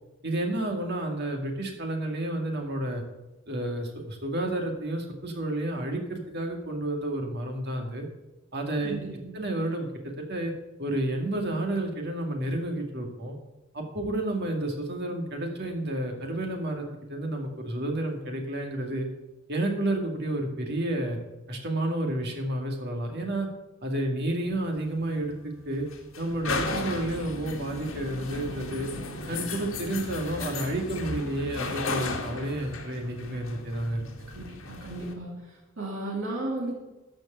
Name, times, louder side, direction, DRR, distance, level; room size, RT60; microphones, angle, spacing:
voice 1, 0.2-3.0 3.5-8.1 8.5-9.0 9.3-10.5 10.8-13.4 13.7-19.1 19.5-21.2 21.5-23.5 23.8-25.9 26.2-28.9 29.3-34.3, right 1 dB, 55° right, 2 dB, 2.2 m, -30 dB
voice 2, 8.8-9.3 34.3-36.8, right 2 dB, 75° right, -3 dB, 2.5 m, -35 dB
sound 1, 24.5-35.1, left 3 dB, 80° left, 1.8 m, -35 dB
13.5 x 5.2 x 6.8 m, 1.1 s
head